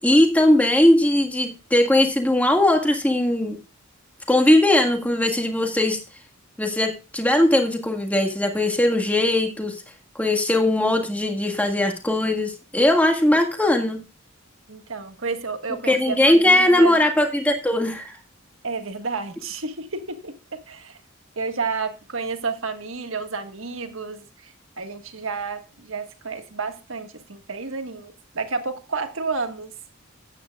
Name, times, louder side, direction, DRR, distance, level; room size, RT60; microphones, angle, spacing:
voice 1, 0.0-3.6 4.3-6.0 6.6-9.8 10.1-14.0 15.8-18.2, left 1 dB, 5° left, 4 dB, 1.7 m, -19 dB
voice 2, 14.7-17.0 18.6-21.0 21.4-29.7, right 4 dB, 65° right, 7 dB, 1.5 m, -31 dB
14.5 x 9.2 x 2.3 m, 0.31 s
head